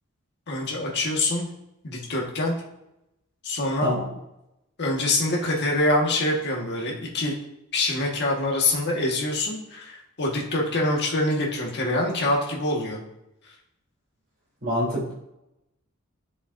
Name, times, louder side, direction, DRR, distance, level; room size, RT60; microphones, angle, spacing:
voice 1, 0.5-1.5 1.8-2.6 3.4-3.9 4.8-7.3 7.7-13.0, left 2 dB, 55° left, -1 dB, 1.5 m, -25 dB
voice 2, 14.6-15.1, equal, 45° right, -5 dB, 3.2 m, -26 dB
9.9 x 6.8 x 2.6 m, 0.86 s
head